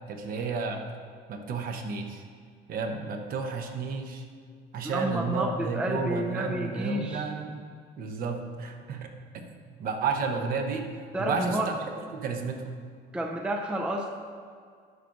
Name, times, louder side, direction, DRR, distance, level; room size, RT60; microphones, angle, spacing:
voice 1, 0.1-0.8 1.3-2.2 2.7-4.2 4.7-7.6 8.0-10.9 11.2-11.8 12.1-12.7, right 4 dB, 50° right, 4 dB, 0.9 m, -32 dB
voice 2, 4.8-7.3 11.1-11.7 13.1-14.1, right 1 dB, 5° right, 2 dB, 0.4 m, -30 dB
10.5 x 4.0 x 6.4 m, 2.1 s
cardioid pair, 175°, 19 cm